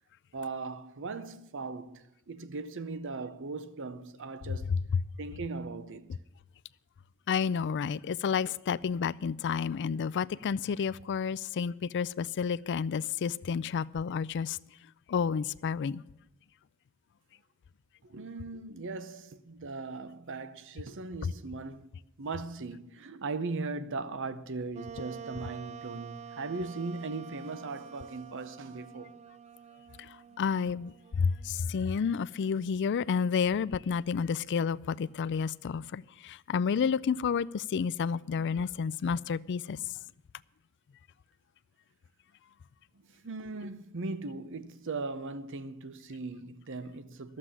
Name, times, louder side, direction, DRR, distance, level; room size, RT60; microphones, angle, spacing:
voice 1, 0.3-4.7 5.2-6.2 18.0-21.9 22.2-29.1 43.0-47.4, right 3 dB, 60° right, 0.8 m, -39 dB
voice 2, 7.3-14.6 15.1-16.0 30.0-39.8, left 6 dB, 55° left, 0.4 m, -30 dB
Wind instrument woodwind instrument, 24.7-32.2, right 8 dB, 30° right, 0.4 m, -48 dB
12.0 x 7.5 x 9.7 m
head